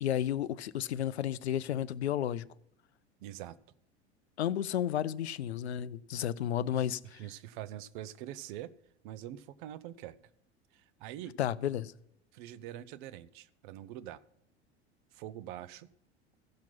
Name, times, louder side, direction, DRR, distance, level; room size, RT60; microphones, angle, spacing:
voice 1, 0.0-2.4 4.4-7.2 11.4-11.9, left 10 dB, 70° left, 0.5 m, -32 dB
voice 2, 3.2-3.6 6.8-6.9 7.2-8.7 9.0-10.2 10.7-11.3 12.3-14.2 15.1-15.9, right 12 dB, 50° right, 0.6 m, -44 dB
15.0 x 5.9 x 5.7 m
figure-of-eight pair, 75°, 34 cm